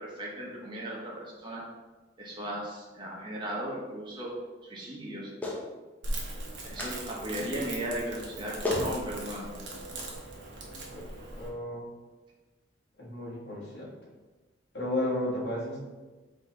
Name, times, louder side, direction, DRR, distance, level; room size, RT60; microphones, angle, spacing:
voice 1, 0.0-1.6 2.2-4.3 4.6-5.3 6.7-9.5, right 1 dB, 25° right, -4 dB, 0.8 m, -36 dB
Clapping, 5.4-5.6 6.8-7.0 8.2-8.3 8.6-8.9 10.0-10.1, left 2 dB, 10° left, 0.6 m, -31 dB
Crackle, 6.0-11.5, right 1 dB, 75° right, 0.8 m, -39 dB
voice 2, 11.4-11.9 13.0-13.9 14.7-15.8, left 1 dB, 60° left, -5 dB, 1.3 m, -33 dB
4.0 x 2.9 x 3.7 m, 1.2 s
head